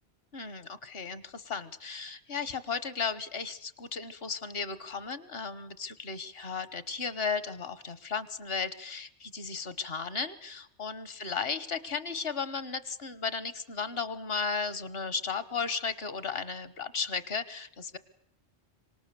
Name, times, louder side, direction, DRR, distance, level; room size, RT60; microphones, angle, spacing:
voice 1, 0.3-18.0, left 5 dB, 60° left, 14 dB, 1.4 m, -35 dB
26.0 x 25.0 x 6.9 m, 0.72 s
omnidirectional pair, 1.2 m